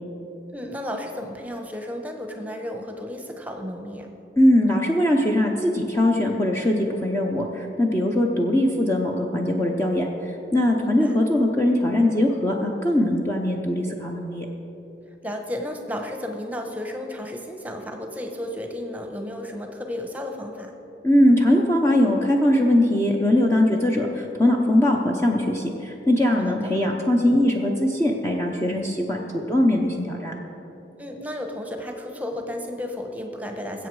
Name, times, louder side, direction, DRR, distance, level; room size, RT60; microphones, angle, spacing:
voice 1, 0.5-4.1 10.8-11.2 15.2-20.7 26.4-26.8 31.0-33.9, left 1 dB, 10° right, 3 dB, 1.1 m, -33 dB
voice 2, 4.4-14.5 21.0-30.3, left 1 dB, 15° left, 0 dB, 0.7 m, -21 dB
20.5 x 8.1 x 4.8 m, 3.0 s
head